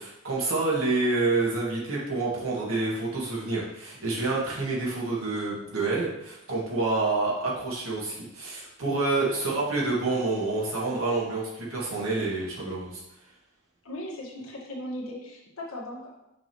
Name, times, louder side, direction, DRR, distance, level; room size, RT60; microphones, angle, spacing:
voice 1, 0.0-13.0, right 3 dB, 80° right, -5 dB, 1.8 m, -28 dB
voice 2, 13.8-16.1, left 1 dB, 90° left, -3 dB, 1.6 m, -38 dB
6.1 x 5.3 x 3.1 m, 0.87 s
head